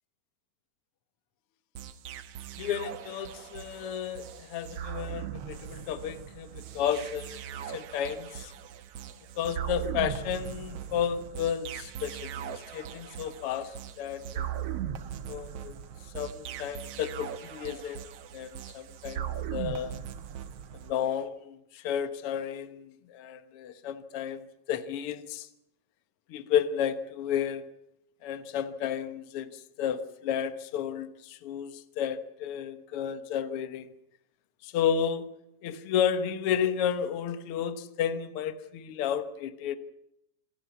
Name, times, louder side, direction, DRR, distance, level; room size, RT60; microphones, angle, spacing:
sound 1, 1.8-20.9, right 10 dB, 65° right, 1.7 m, -39 dB
voice 1, 2.6-8.5 9.4-14.5 15.3-15.8 16.1-18.0 18.3-20.0 20.8-25.5 26.3-27.7 28.2-33.9 34.6-35.3 35.6-39.8, left 8 dB, 60° left, 11 dB, 1.7 m, -32 dB
27.0 x 12.0 x 9.4 m, 0.81 s
omnidirectional pair, 3.8 m